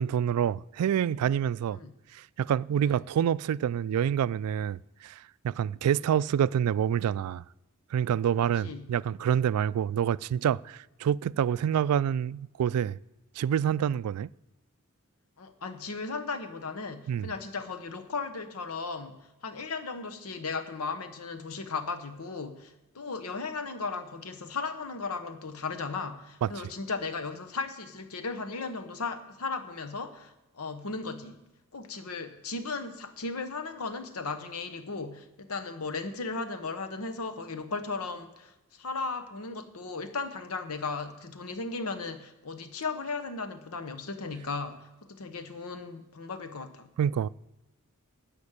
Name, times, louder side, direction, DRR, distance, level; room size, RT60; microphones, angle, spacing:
voice 1, 0.0-1.8 2.1-5.1 5.4-7.4 7.9-13.0 13.4-14.3 17.1-17.3 26.4-26.6 47.0-47.3, right 9 dB, 90° right, 0.3 m, -27 dB
voice 2, 8.6-8.9 15.4-31.4 31.7-46.9, left 4 dB, 80° left, 0.9 m, -36 dB
13.0 x 5.2 x 8.7 m
head